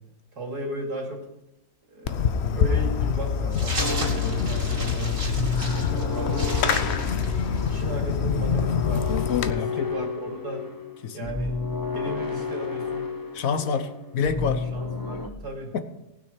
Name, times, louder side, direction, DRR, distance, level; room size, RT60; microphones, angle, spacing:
voice 1, 0.3-1.2 1.9-5.2 5.6-7.1 7.7-10.7 11.1-11.6 11.9-13.0 14.7-15.7, equal, 60° right, 0 dB, 3.1 m, -35 dB
Fireworks, 2.1-9.5, left 7 dB, 80° left, 0.5 m, -25 dB
sound 1, 3.5-7.9, right 2 dB, 80° right, 3.7 m, -35 dB
cyberpunk drones, 3.8-15.3, left 4 dB, 30° left, 0.4 m, -32 dB
voice 2, 9.5-9.9 11.0-11.3 13.3-14.6 15.7-15.8, left 6 dB, 55° left, 10 dB, 1.2 m, -27 dB
19.0 x 6.4 x 5.1 m, 0.92 s
omnidirectional pair, 1.9 m